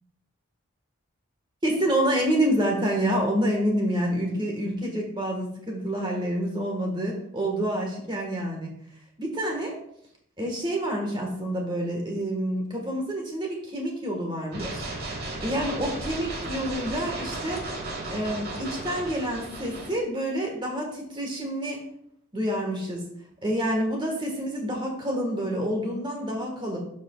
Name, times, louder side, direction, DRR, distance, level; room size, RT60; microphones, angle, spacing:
voice 1, 1.6-8.7 9.2-9.8 10.4-14.9 15.4-17.7 18.1-21.8 22.3-23.0 23.4-26.8, right 1 dB, 20° right, 1 dB, 1.5 m, -28 dB
sound 1, 14.5-19.9, right 2 dB, 45° right, 1.3 m, -35 dB
12.0 x 5.1 x 2.3 m, 0.71 s
head